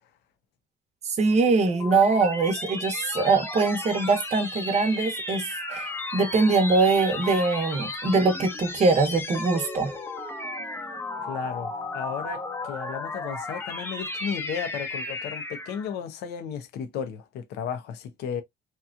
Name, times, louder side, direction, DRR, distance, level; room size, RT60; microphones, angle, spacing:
voice 1, 1.0-9.9, right 3 dB, 40° right, 0.8 m, -23 dB
sound 1, 1.3-15.9, left 2 dB, 15° left, 0.7 m, -34 dB
voice 2, 11.3-18.4, left 7 dB, 80° left, 0.6 m, -34 dB
2.9 x 2.3 x 2.4 m
cardioid pair, 110°, 17 cm